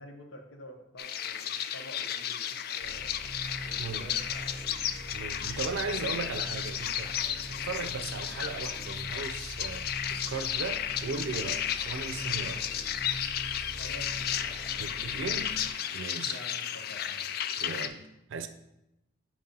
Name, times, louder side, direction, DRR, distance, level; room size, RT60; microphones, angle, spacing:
voice 1, 0.0-3.1 3.6-4.4 7.5-7.7 13.8-15.2 16.2-17.4, equal, 90° left, 1.0 m, -49 dB
sound 1, 1.0-17.9, left 9 dB, 50° left, 0.3 m, -33 dB
sound 2, 2.8-15.7, right 1 dB, 15° right, 1.1 m, -43 dB
voice 2, 3.8-4.1 5.1-7.2 7.5-12.7 14.8-15.6 15.9-16.4 17.6-18.5, right 4 dB, 85° right, 0.5 m, -37 dB
5.0 x 3.8 x 5.4 m
head